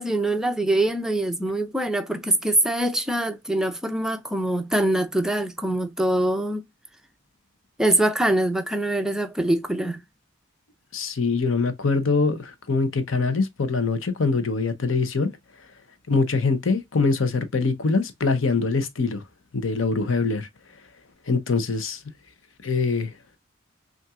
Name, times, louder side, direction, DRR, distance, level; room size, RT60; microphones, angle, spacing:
voice 1, 0.0-6.6 7.8-10.0, right 1 dB, 5° right, 0.5 m, -24 dB
voice 2, 10.9-15.3 16.1-19.2 19.5-20.5 21.3-22.0 22.6-23.1, left 4 dB, 85° left, 0.8 m, -23 dB
5.5 x 2.6 x 2.3 m
head